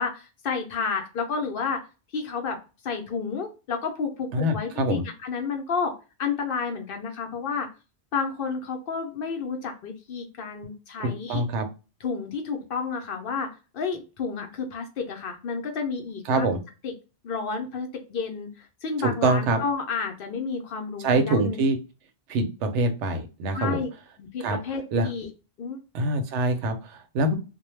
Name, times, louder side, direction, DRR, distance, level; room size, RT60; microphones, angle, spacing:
voice 1, 0.0-1.8 2.1-2.6 2.8-5.9 6.2-7.7 8.1-11.4 12.0-13.5 13.7-16.5 16.8-16.9 17.2-21.6 23.5-23.9 24.2-25.3 25.6-25.8, left 5 dB, 60° left, 3 dB, 0.6 m, -31 dB
voice 2, 4.3-5.0 11.0-11.7 16.3-16.6 19.0-19.6 21.0-21.8 22.3-23.8 24.4-24.6 24.9-25.1 25.9-27.4, right 2 dB, 85° right, 7 dB, 0.9 m, -24 dB
2.2 x 2.1 x 3.0 m, 0.32 s
omnidirectional pair, 1.2 m